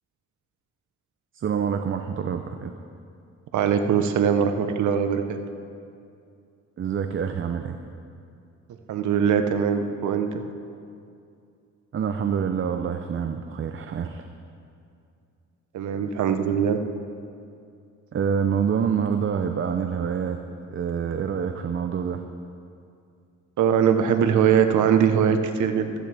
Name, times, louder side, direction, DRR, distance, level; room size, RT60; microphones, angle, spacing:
voice 1, 1.3-2.7 6.8-7.8 11.9-14.2 18.1-20.4 20.7-22.3, right 7 dB, 40° right, 7 dB, 0.7 m, -26 dB
voice 2, 3.5-5.4 8.9-10.4 15.7-16.8 23.6-25.9, right 7 dB, 75° right, 7 dB, 1.0 m, -21 dB
15.5 x 14.0 x 3.5 m, 2.5 s
cardioid pair, 90°, 30 cm